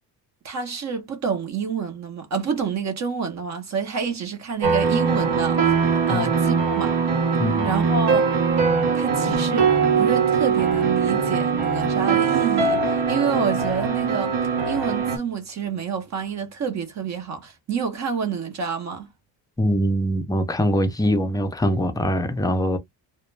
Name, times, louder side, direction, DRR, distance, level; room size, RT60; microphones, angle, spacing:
voice 1, 0.4-5.6 5.9-7.0 7.6-8.3 8.9-14.4 14.7-19.1, right 6 dB, 40° right, 0.6 m, -28 dB
sound 1, 4.6-15.2, right 5 dB, 80° right, 0.9 m, -21 dB
voice 2, 7.4-7.7 19.6-22.8, equal, 10° left, 0.3 m, -23 dB
2.1 x 2.1 x 3.0 m
cardioid pair, 140°, 41 cm